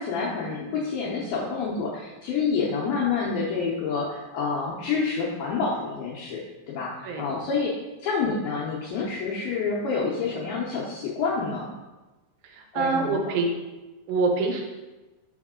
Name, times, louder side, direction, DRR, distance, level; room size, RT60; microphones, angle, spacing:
voice 1, 0.0-6.4 6.7-7.7 8.0-11.7 12.7-13.2, left 5 dB, 80° left, -5 dB, 2.2 m, -28 dB
voice 2, 12.4-13.5 14.1-14.6, right 4 dB, 80° right, 2 dB, 2.8 m, -25 dB
6.3 x 5.8 x 3.7 m, 1.1 s
omnidirectional pair, 5.3 m